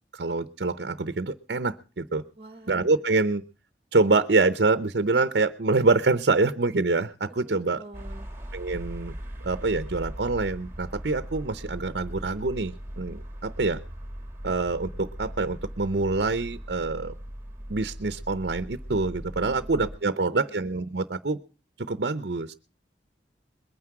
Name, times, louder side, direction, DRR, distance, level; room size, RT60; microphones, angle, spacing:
voice 1, 0.1-2.2 2.7-3.4 3.9-7.8 8.5-9.1 9.4-13.8 14.4-17.1 17.7-21.4 21.8-22.5, right 3 dB, 65° right, 12 dB, 0.7 m, -25 dB
voice 2, 2.4-3.0 7.4-8.3 19.4-19.7 20.0-20.5, right 2 dB, 30° right, 10 dB, 0.9 m, -48 dB
sound 1, 7.9-20.0, equal, 15° right, 1.5 m, -39 dB
21.5 x 9.7 x 4.7 m, 0.35 s
head